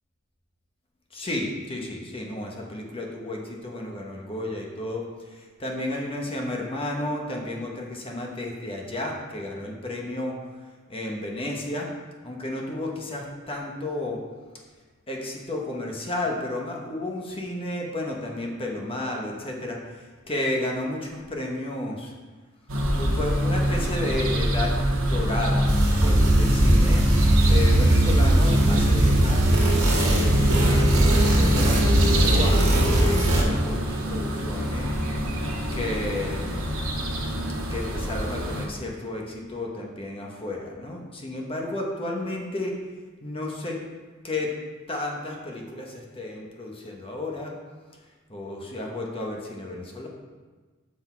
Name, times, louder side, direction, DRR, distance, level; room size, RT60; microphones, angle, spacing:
voice 1, 1.1-11.9 12.2-14.2 15.1-22.1 22.9-24.8 25.1-27.1 27.5-34.9 35.7-36.7 37.7-42.8 43.2-43.8 44.2-44.5 44.9-47.5 48.3-50.1, left 1 dB, 25° left, 0 dB, 1.1 m, -32 dB
sound 1, 22.7-38.7, right 1 dB, 70° right, 1.2 m, -25 dB
sound 2, 25.7-33.4, right 1 dB, 85° right, 1.9 m, -20 dB
6.6 x 6.0 x 4.5 m, 1.4 s
head